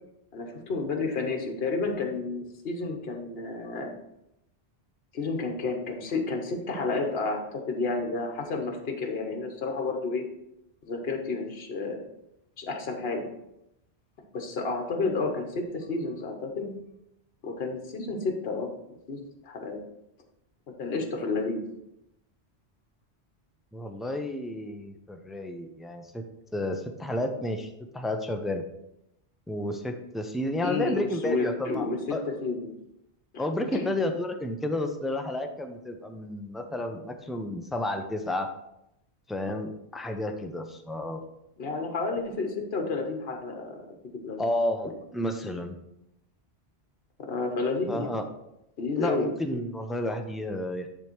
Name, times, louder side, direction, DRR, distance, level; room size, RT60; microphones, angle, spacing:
voice 1, 0.3-3.9 5.1-10.2 10.9-12.0 12.6-13.3 14.3-16.7 17.4-18.7 19.1-19.8 20.8-21.6 30.6-32.7 33.3-33.4 33.7-33.9 41.6-43.8 44.1-44.4 47.3-48.1 48.8-49.3, left 3 dB, 65° left, 3 dB, 1.3 m, -31 dB
voice 2, 23.7-26.3 26.5-27.7 27.9-28.6 29.5-32.3 33.4-38.5 39.3-41.2 44.4-45.8 47.9-48.3 48.9-50.9, left 1 dB, ahead, 5 dB, 0.3 m, -31 dB
9.8 x 3.5 x 4.5 m, 0.83 s
omnidirectional pair, 1.1 m